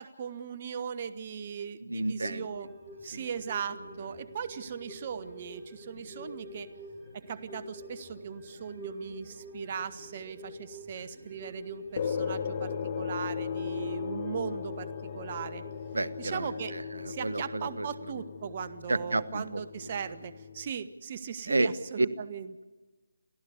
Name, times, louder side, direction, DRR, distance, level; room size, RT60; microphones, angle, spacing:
voice 1, 0.0-2.7 3.0-6.7 7.1-15.6 16.2-16.7 17.1-22.6, right 7 dB, 35° right, 14 dB, 1.0 m, -38 dB
voice 2, 1.9-2.5 3.1-3.2 15.9-17.9 18.9-19.6 21.5-21.7, right 2 dB, 75° right, 16 dB, 1.1 m, -31 dB
sound 1, 2.2-19.0 19.3-19.4, left 1 dB, 15° right, 6.8 m, -48 dB
sound 2, 12.0-20.7, left 7 dB, 35° left, 1.6 m, -37 dB
28.5 x 14.0 x 8.1 m, 1.2 s
figure-of-eight pair, 155°, 0 cm